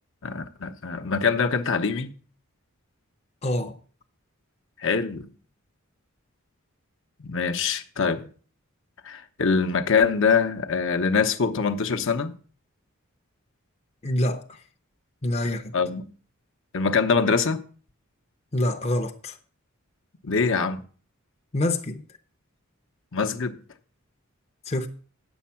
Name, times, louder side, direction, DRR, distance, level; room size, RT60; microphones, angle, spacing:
voice 1, 0.2-2.1 4.8-5.3 7.2-8.3 9.0-12.3 15.7-16.1 16.7-17.6 20.2-20.8 23.1-23.6, left 5 dB, 65° left, 0.8 m, -24 dB
voice 2, 3.4-3.8 14.0-14.6 15.2-15.7 18.5-19.4 21.5-22.0 24.7-24.9, left 1 dB, 30° left, 0.7 m, -26 dB
9.4 x 7.2 x 5.7 m
head